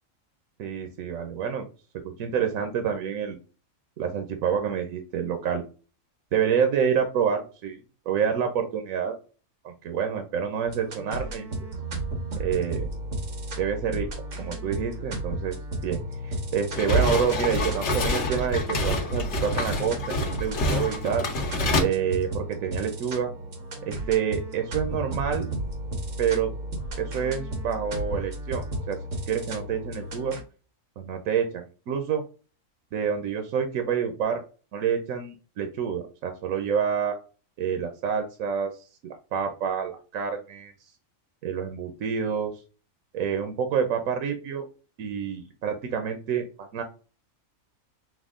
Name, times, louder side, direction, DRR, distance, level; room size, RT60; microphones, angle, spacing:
voice 1, 0.6-1.6 2.0-3.4 4.0-5.6 6.3-9.2 9.6-11.7 12.4-12.9 13.6-14.1 14.4-15.6 15.8-21.3 21.8-23.3 23.8-25.5 26.2-26.5 27.0-29.0 29.3-30.4 31.0-32.2 32.9-34.4 34.7-37.1 37.6-40.7 41.4-42.5 43.1-44.7 45.0-46.8, right 7 dB, 85° right, 6 dB, 1.1 m, -28 dB
sound 1, 10.7-30.4, right 1 dB, 70° right, 1.6 m, -34 dB
sound 2, 16.7-21.8, left 1 dB, 60° left, 1.2 m, -27 dB
6.1 x 2.1 x 3.6 m, 0.35 s
omnidirectional pair, 1.4 m